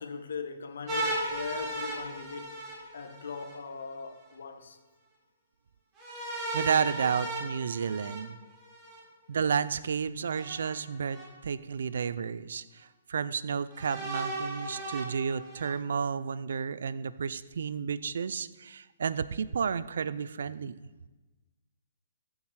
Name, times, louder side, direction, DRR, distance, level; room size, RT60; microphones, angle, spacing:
voice 1, 0.0-2.5 2.9-4.8, left 5 dB, 75° left, 1.3 m, -39 dB
sound 1, 0.9-3.5 6.0-9.0 10.3-11.2 12.0-12.1 13.7-15.7, right 1 dB, 20° right, 4.0 m, -36 dB
voice 2, 6.5-8.4 9.3-20.9, right 6 dB, 70° right, 0.5 m, -31 dB
14.5 x 7.5 x 4.8 m
hypercardioid pair, 155°, 0 cm